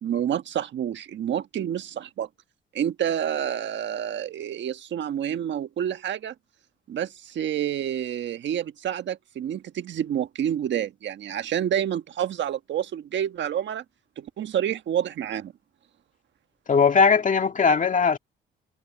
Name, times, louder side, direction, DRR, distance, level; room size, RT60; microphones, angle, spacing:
voice 1, 0.0-2.3 2.7-6.3 6.9-13.8 14.2-15.5, right 10 dB, 65° right, 1.5 m, -28 dB
voice 2, 16.7-18.2, left 5 dB, 40° left, 2.1 m, -19 dB
cardioid pair, 90°, 20 cm